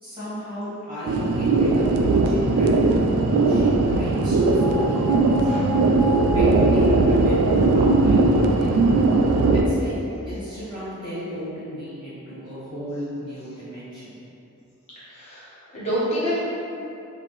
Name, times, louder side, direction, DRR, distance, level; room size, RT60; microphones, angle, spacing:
voice 1, 0.0-5.2 6.3-8.8 9.6-9.9 10.2-14.1, equal, 25° right, -15 dB, 1.4 m, -34 dB
sound 1, 1.1-9.6, right 3 dB, 75° right, 0.3 m, -19 dB
voice 2, 5.4-6.0 15.1-15.4 15.7-16.5, equal, 30° left, -11 dB, 1.3 m, -27 dB
4.2 x 2.7 x 3.2 m, 2.8 s
head